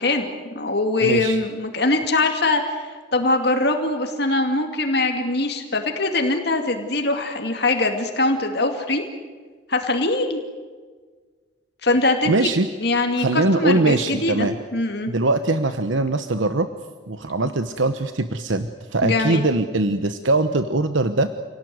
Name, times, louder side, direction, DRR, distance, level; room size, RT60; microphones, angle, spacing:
voice 1, 0.0-2.8 3.1-9.0 9.7-10.4 11.8-12.5 12.8-14.5 14.7-15.1 19.0-19.4, left 2 dB, 55° left, 4 dB, 2.5 m, -22 dB
voice 2, 1.0-1.4 12.3-12.7 13.2-14.6 15.1-16.7 17.1-21.3, right 2 dB, 80° right, 9 dB, 1.1 m, -21 dB
28.5 x 18.5 x 9.5 m, 1.5 s
head